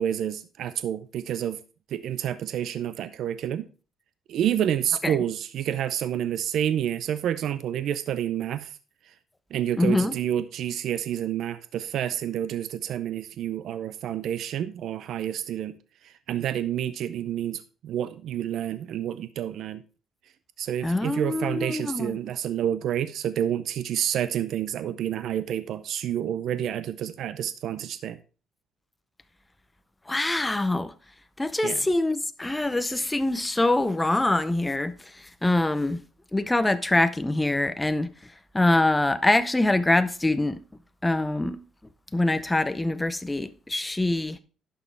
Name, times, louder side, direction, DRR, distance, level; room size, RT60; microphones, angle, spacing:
voice 1, 0.0-1.6 1.9-3.7 4.3-8.7 9.5-15.8 16.0-19.8 20.6-28.2 31.6-31.8, right 10 dB, 65° right, 0.5 m, -29 dB
voice 2, 9.8-10.2 20.8-22.2 30.1-30.9 31.4-36.0 36.3-38.1 38.5-40.6 41.0-41.6 42.1-44.4, left 2 dB, 10° left, 0.7 m, -24 dB
11.0 x 6.4 x 3.4 m
cardioid pair, 125°, 0 cm